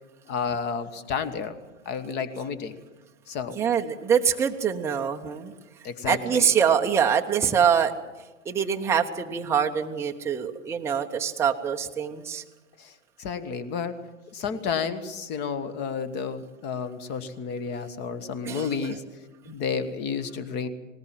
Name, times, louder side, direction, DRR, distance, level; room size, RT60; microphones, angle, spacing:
voice 1, 0.3-1.6 1.8-2.8 3.3-3.6 5.8-6.4 12.8-14.0 14.3-19.0 19.5-20.7, left 6 dB, 25° left, 12 dB, 1.4 m, -31 dB
voice 2, 3.6-5.5 6.1-7.9 8.4-12.4 18.4-19.0 19.5-19.6, right 7 dB, 5° right, 2 dB, 0.8 m, -24 dB
19.5 x 19.0 x 7.6 m, 1.2 s
figure-of-eight pair, 110°, 38 cm